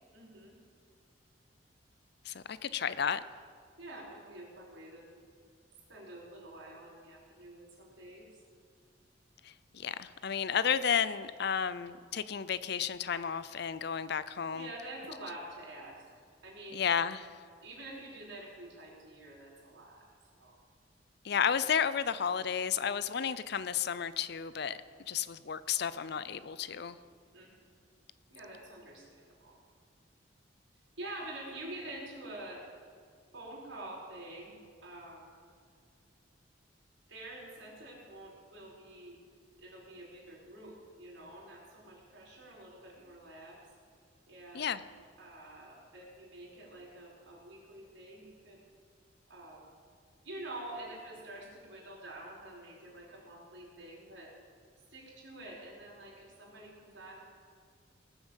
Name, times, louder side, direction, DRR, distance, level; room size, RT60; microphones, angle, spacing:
voice 1, 0.1-0.6 3.8-5.1 5.9-8.3 14.5-16.0 16.4-16.8 17.6-20.1 20.4-20.6 27.3-27.7 28.3-29.6 31.0-32.6 33.3-34.6 34.8-35.3 37.1-39.2 39.6-43.7 44.3-44.8 45.2-48.6 49.3-49.7 50.2-54.3 54.9-57.2, right 1 dB, 85° right, -4 dB, 4.8 m, -47 dB
voice 2, 2.2-3.2 9.4-14.7 16.7-17.3 21.2-24.8 25.1-27.0 44.5-44.8, left 7 dB, 60° left, 15 dB, 0.5 m, -32 dB
19.5 x 7.1 x 7.3 m, 2.1 s
head